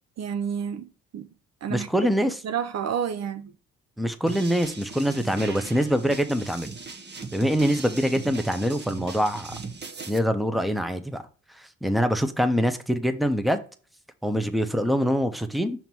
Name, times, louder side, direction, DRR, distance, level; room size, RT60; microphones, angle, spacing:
voice 1, 0.2-1.3 1.6-1.9 2.2-3.5, right 8 dB, 50° right, 0.7 m, -30 dB
voice 2, 1.7-2.3 4.0-6.7 7.3-9.5 10.1-11.2 11.5-13.6 14.2-15.9, equal, ahead, 0.9 m, -24 dB
sound 1, 4.3-10.2, right 4 dB, 30° right, 1.2 m, -39 dB
5.8 x 3.0 x 5.3 m
hypercardioid pair, 50°, 33 cm